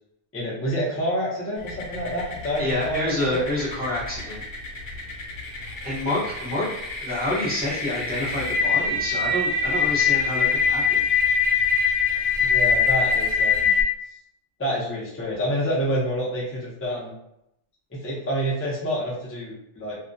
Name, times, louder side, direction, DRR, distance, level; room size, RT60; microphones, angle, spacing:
voice 1, 0.3-3.4 12.4-13.7 14.6-17.1 17.9-19.9, equal, 20° left, -6 dB, 0.4 m, -28 dB
sound 1, 1.7-13.8, left 5 dB, 85° left, 0.9 m, -24 dB
voice 2, 2.6-4.4 5.8-6.7 7.0-11.1, left 1 dB, 10° right, -8 dB, 0.7 m, -28 dB
2.2 x 2.2 x 2.5 m, 0.81 s
omnidirectional pair, 1.3 m